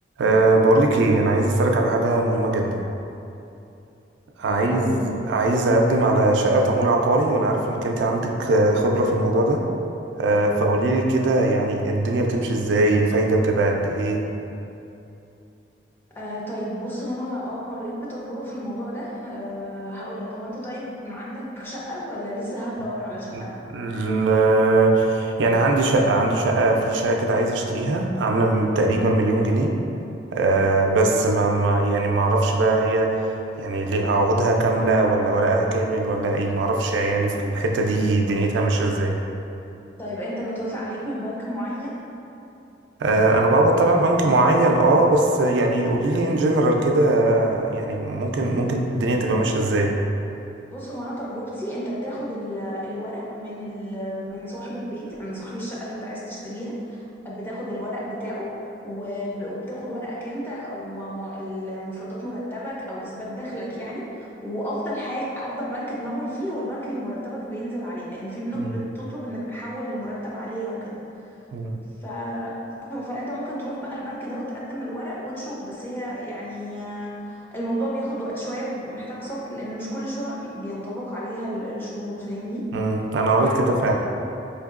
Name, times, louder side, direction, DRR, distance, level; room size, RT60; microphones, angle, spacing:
voice 1, 0.2-2.8 4.4-9.6 10.2-14.2 23.3-23.4 23.7-29.7 30.3-39.1 43.0-49.9 68.6-68.8 71.5-71.8 82.7-83.9, right 2 dB, 80° right, 2 dB, 0.3 m, -20 dB
voice 2, 4.5-5.0 16.1-23.5 40.0-42.0 50.7-58.5 58.8-71.0 72.0-72.6 72.9-82.6 83.4-83.9, equal, 10° left, -7 dB, 0.6 m, -32 dB
4.4 x 2.8 x 2.3 m, 2.8 s
head